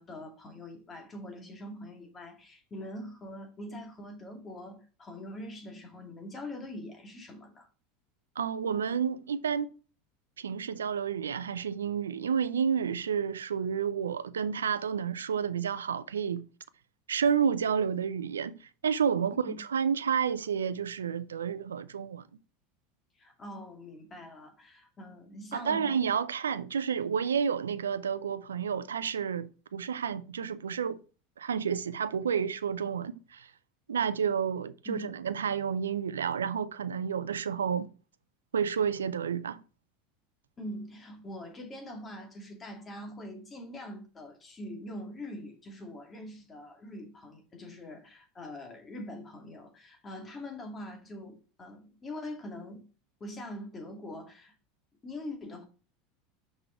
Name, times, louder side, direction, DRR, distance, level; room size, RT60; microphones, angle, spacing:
voice 1, 0.0-7.7 19.5-19.6 23.2-26.0 34.8-35.1 40.6-52.9 53.2-54.5 55.0-55.6, left 1 dB, 25° left, 2.5 m, -43 dB
voice 2, 8.4-9.7 10.4-16.4 17.1-18.6 18.8-22.2 25.5-31.0 31.4-33.5 33.9-37.9 38.5-39.6, right 7 dB, 85° right, 0.4 m, -30 dB
6.1 x 5.1 x 4.4 m
hypercardioid pair, 85°, 0 cm